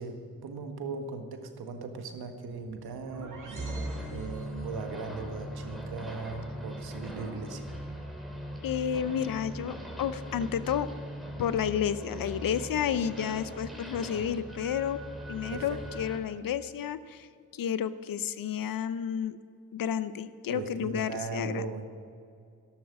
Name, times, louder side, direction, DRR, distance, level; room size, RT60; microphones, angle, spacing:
voice 1, 0.0-3.4 4.1-7.6 15.5-15.8 20.5-21.9, right 4 dB, 70° right, 6 dB, 1.7 m, -38 dB
sound 1, 2.7-4.9, right 2 dB, 50° right, 2.5 m, -40 dB
Engine sound, 3.5-16.2, equal, ahead, 3.6 m, -40 dB
voice 2, 8.6-10.9 11.4-19.4 19.7-21.6, left 8 dB, 60° left, 14 dB, 0.8 m, -31 dB
12.5 x 12.0 x 6.1 m, 2.4 s
supercardioid pair, 50°, 39 cm